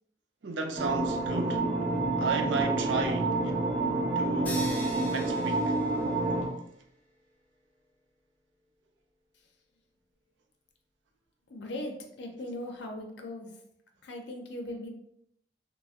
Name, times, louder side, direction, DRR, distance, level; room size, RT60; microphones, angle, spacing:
voice 1, 0.4-1.8 2.2-3.7 4.2-4.6 5.1-5.8, right 3 dB, 90° right, 0.4 m, -33 dB
sound 1, 0.8-6.5, right 2 dB, 45° right, 0.6 m, -28 dB
sound 2, 4.5-6.6, left 1 dB, 10° left, 0.4 m, -42 dB
voice 2, 11.5-13.5 14.0-14.9, left 1 dB, 75° left, 0.5 m, -39 dB
2.4 x 2.0 x 3.5 m
head